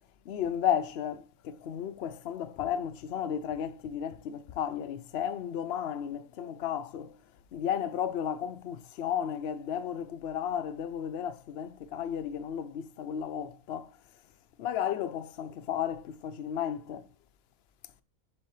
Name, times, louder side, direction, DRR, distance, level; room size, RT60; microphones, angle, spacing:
voice 1, 0.3-7.2 7.5-14.0 14.6-17.1, left 9 dB, 60° left, 0.7 m, -33 dB
7.3 x 6.8 x 3.2 m
omnidirectional pair, 1.5 m